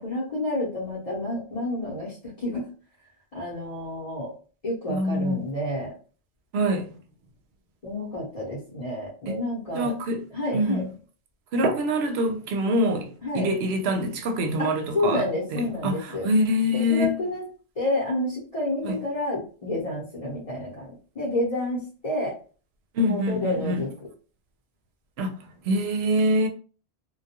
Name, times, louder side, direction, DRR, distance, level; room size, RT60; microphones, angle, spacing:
voice 1, 0.0-2.1 2.4-2.6 3.3-4.3 4.6-5.9 7.8-9.9 10.3-10.8 13.2-13.5 14.6-14.7 14.9-16.3 16.7-17.4 17.8-20.9 21.2-22.3 23.0-23.9, left 1 dB, 35° left, 0.8 m, -29 dB
voice 2, 4.9-5.5 6.5-6.9 9.3-9.4 9.7-10.2 10.5-10.9 11.5-17.1 18.8-19.0 22.9-23.9 25.2-25.4 25.7-26.5, equal, 75° right, 0.8 m, -25 dB
2.2 x 2.2 x 2.8 m
omnidirectional pair, 1.1 m